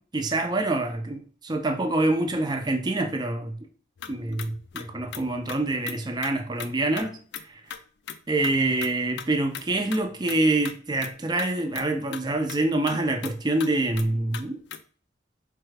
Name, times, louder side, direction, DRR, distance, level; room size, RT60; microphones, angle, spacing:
voice 1, 0.1-3.6 4.1-7.6 8.3-14.6, right 2 dB, 25° right, 0.5 m, -26 dB
sound 1, 4.0-6.7 7.0-7.1 7.3-7.4 7.7-7.8 8.1-8.2 8.4-8.5 8.8-9.3 9.5-10.0 10.3-10.4 10.6-10.7 11.0-11.1 11.4-11.5 11.7-11.9 12.1-12.2 12.5-12.6 12.9-13.0 13.2-13.3 13.6-13.7 14.0-14.1 14.3-14.4 14.7-14.8, left 8 dB, 75° left, 0.4 m, -38 dB
4.3 x 2.3 x 3.2 m
head